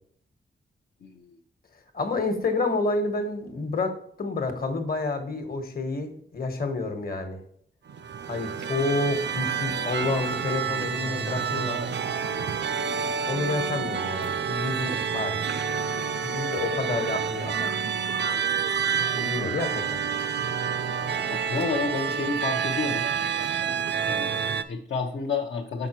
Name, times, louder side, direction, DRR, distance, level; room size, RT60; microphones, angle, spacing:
voice 1, 1.9-7.4 8.3-11.8 13.3-15.7 16.2-17.8 19.1-20.0, left 3 dB, 50° left, 5 dB, 1.3 m, -29 dB
sound 1, 7.9-24.6, right 7 dB, 65° right, 0.5 m, -28 dB
voice 2, 21.3-23.1 24.0-25.9, left 4 dB, 65° left, 0 dB, 0.7 m, -30 dB
6.6 x 5.8 x 3.0 m, 0.63 s
wide cardioid pair, 135°, 20 cm